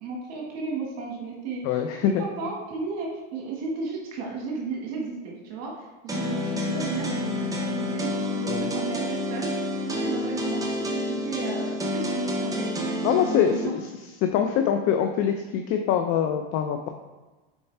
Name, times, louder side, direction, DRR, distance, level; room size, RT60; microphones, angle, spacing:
voice 1, 0.0-1.7 2.0-13.7, right 4 dB, 60° right, -2 dB, 1.7 m, -34 dB
voice 2, 1.6-2.2 8.5-8.7 13.0-13.9 14.2-16.9, left 8 dB, 55° left, 5 dB, 0.6 m, -24 dB
sound 1, 6.1-13.7, left 1 dB, 10° right, 0.9 m, -29 dB
7.1 x 4.6 x 3.4 m, 1.2 s
supercardioid pair, 115°, 30 cm